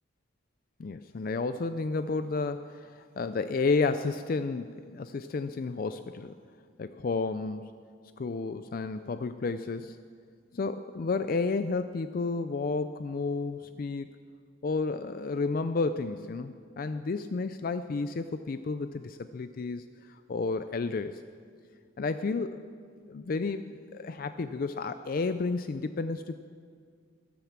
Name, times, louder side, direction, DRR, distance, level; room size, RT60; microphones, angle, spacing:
voice 1, 0.8-6.3 6.8-7.7 8.2-10.0 10.5-14.1 14.6-21.2 22.0-22.6 23.1-26.4, left 4 dB, 50° left, 11 dB, 0.4 m, -31 dB
13.0 x 12.5 x 7.3 m, 2.1 s
head